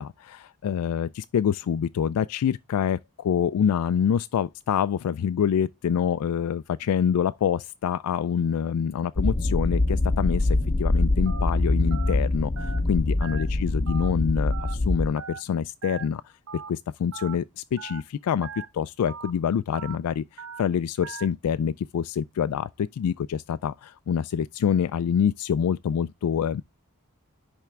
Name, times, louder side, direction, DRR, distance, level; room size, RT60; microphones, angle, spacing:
voice 1, 0.0-26.6, left 8 dB, 75° left, 0.3 m, -26 dB
sound 1, 9.2-15.1, left 2 dB, 30° left, 0.6 m, -24 dB
Telephone, 11.3-11.5 11.9-12.1 12.6-12.8 13.2-13.4 13.9-14.1 14.5-14.7 15.2-15.4 15.8-16.0 16.5-16.7 17.1-17.3 17.8-18.0 18.4-18.7 19.1-19.3 19.7-20.0 20.4-20.6 21.0-21.3, right 6 dB, 60° right, 0.9 m, -39 dB
10.5 x 3.5 x 3.3 m
head